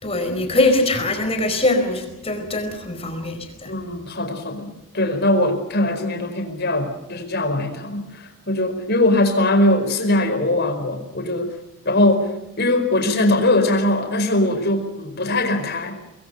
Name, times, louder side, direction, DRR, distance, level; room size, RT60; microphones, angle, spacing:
voice 1, 0.0-3.7, left 2 dB, 30° left, 6 dB, 4.7 m, -22 dB
voice 2, 3.6-11.6 11.8-16.0, left 1 dB, 50° left, 6 dB, 4.9 m, -21 dB
26.5 x 21.5 x 6.8 m, 0.95 s
head